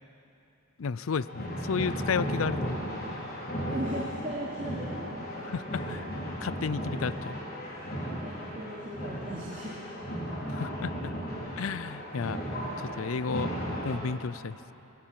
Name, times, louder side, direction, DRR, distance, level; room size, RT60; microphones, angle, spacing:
voice 1, 0.8-2.8 5.5-6.0 6.4-7.4 10.5-11.1 11.6-12.4 12.8-14.6, left 5 dB, 80° left, 17 dB, 0.5 m, -32 dB
sound 1, 1.1-14.0, equal, 50° left, 4.6 m, -35 dB
voice 2, 3.6-6.0 8.2-9.9, right 1 dB, 40° right, -6 dB, 3.0 m, -38 dB
19.5 x 19.5 x 7.6 m, 2.8 s
head